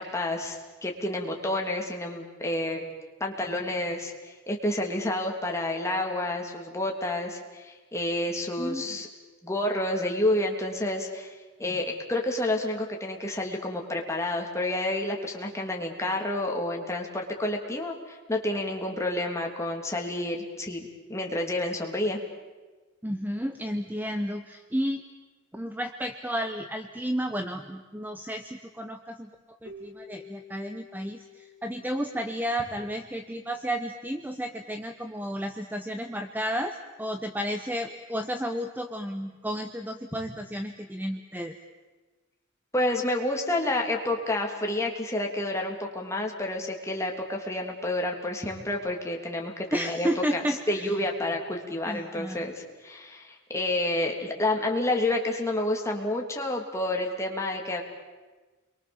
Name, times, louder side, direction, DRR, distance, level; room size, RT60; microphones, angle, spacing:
voice 1, 0.0-2.8 3.2-9.1 9.4-11.3 11.6-22.2 42.7-50.4 50.7-57.8, left 1 dB, 15° left, 1 dB, 3.2 m, -29 dB
voice 2, 23.0-25.0 25.5-29.3 29.6-41.6 49.7-50.9 51.8-52.5, equal, 10° right, 6 dB, 1.0 m, -32 dB
Keyboard (musical), 29.6-32.9, left 3 dB, 65° right, 3.8 m, -49 dB
29.5 x 23.0 x 7.3 m, 1.3 s
head